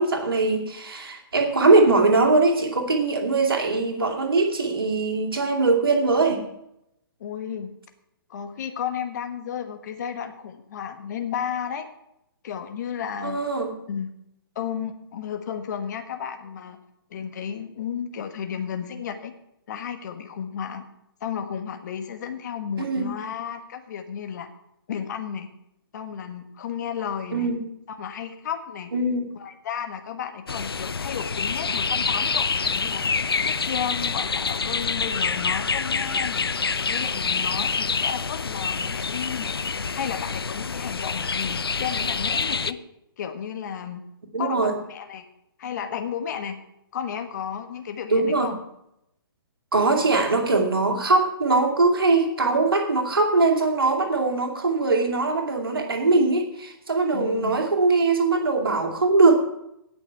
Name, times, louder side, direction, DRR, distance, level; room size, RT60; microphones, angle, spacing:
voice 1, 0.0-6.4 13.2-13.7 22.8-23.1 27.3-27.6 28.9-29.3 44.3-44.7 48.1-48.5 49.7-59.4, right 3 dB, 70° right, 3 dB, 2.5 m, -21 dB
voice 2, 7.2-7.7 8.3-11.9 12.4-13.4 13.9-14.1 14.5-16.8 17.1-19.3 19.7-20.8 21.2-24.5 24.9-25.5 25.9-27.5 27.9-28.9 29.4-33.0 33.4-36.5 36.9-39.6 39.9-42.8 43.2-44.0 44.4-45.3 45.6-46.6 46.9-48.6 57.1-57.6, left 8 dB, 50° left, 7 dB, 1.4 m, -33 dB
sound 1, 30.5-42.7, left 5 dB, 80° left, 0.5 m, -27 dB
17.5 x 6.2 x 4.6 m, 0.81 s
figure-of-eight pair, 125°, 12 cm